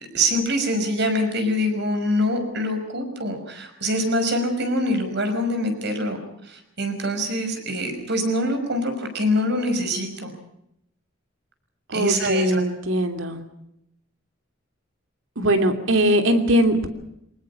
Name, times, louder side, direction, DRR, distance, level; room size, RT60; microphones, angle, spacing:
voice 1, 0.1-6.2 6.4-10.3 11.9-12.6, equal, 60° right, 6 dB, 5.7 m, -24 dB
voice 2, 11.9-13.4 15.4-16.9, right 1 dB, 75° right, 6 dB, 3.0 m, -21 dB
24.5 x 19.5 x 7.2 m, 0.78 s
head